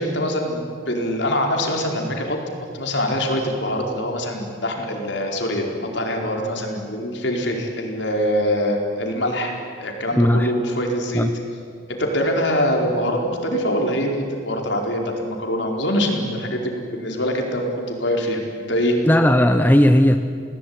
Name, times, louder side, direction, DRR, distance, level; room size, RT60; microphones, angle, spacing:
voice 1, 0.0-2.4 2.7-9.5 9.8-11.3 11.9-18.4 18.7-19.0, equal, 65° left, 1 dB, 4.7 m, -24 dB
voice 2, 10.1-10.5 11.1-11.3 19.0-20.2, equal, 10° left, 7 dB, 0.8 m, -15 dB
29.5 x 19.5 x 9.7 m, 2.3 s
head